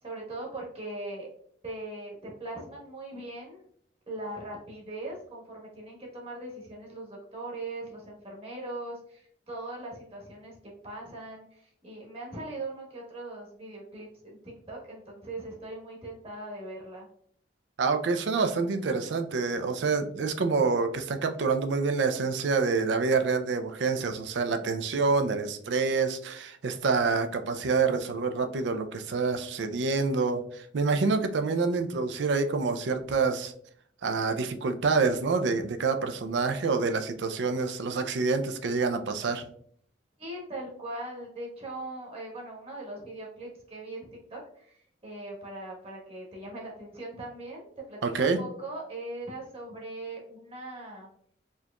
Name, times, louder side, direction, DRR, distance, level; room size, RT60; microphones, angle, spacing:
voice 1, 0.0-1.3 1.6-3.6 4.1-10.6 10.8-17.1 40.2-51.1, right 2 dB, 35° right, -2 dB, 1.1 m, -40 dB
voice 2, 17.8-33.5 34.0-39.5 48.0-48.4, right 4 dB, 80° right, 8 dB, 0.4 m, -27 dB
4.4 x 2.9 x 2.2 m, 0.62 s
head